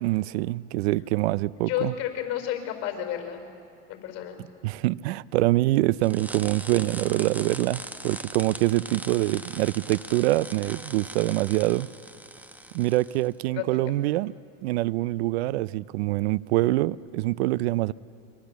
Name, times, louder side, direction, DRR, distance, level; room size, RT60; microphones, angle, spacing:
voice 1, 0.0-1.9 4.6-11.9 12.7-14.3 14.6-17.9, right 18 dB, 75° right, 0.6 m, -25 dB
voice 2, 1.6-3.4 3.9-4.4 13.5-13.8, left 11 dB, 50° left, 4.9 m, -31 dB
sound 1, 6.0-13.3, right 1 dB, 5° right, 1.1 m, -40 dB
26.5 x 24.0 x 8.3 m
supercardioid pair, 110°, 32 cm